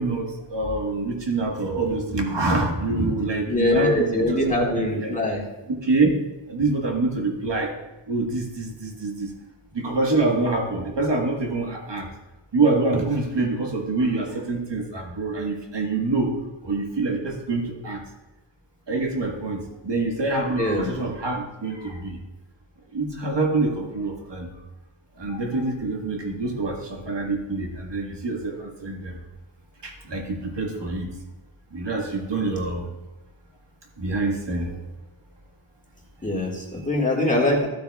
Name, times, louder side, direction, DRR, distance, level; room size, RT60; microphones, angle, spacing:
voice 1, 0.0-4.4 4.7-5.1 5.7-6.2 6.5-7.7 8.1-9.3 9.7-12.1 12.5-16.3 16.6-18.0 18.9-22.2 22.9-24.5 25.2-29.2 29.8-31.1 31.7-32.9 34.0-34.8, right 3 dB, 55° right, 1 dB, 1.5 m, -26 dB
voice 2, 3.5-5.5 20.6-20.9 36.2-37.7, left 1 dB, 15° left, -2 dB, 1.8 m, -23 dB
12.5 x 8.5 x 2.3 m, 1.1 s
wide cardioid pair, 95°, 50 cm